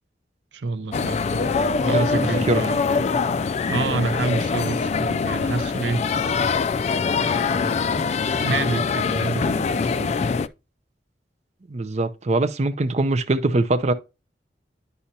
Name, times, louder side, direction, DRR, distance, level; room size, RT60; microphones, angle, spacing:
voice 1, 0.5-3.2 3.7-6.1 7.1-10.1, right 3 dB, 85° right, 0.6 m, -28 dB
sound 1, 0.9-10.5, left 5 dB, 40° left, 0.3 m, -23 dB
voice 2, 1.8-2.6 11.7-13.9, right 2 dB, 40° right, 0.5 m, -23 dB
10.0 x 5.5 x 2.8 m
head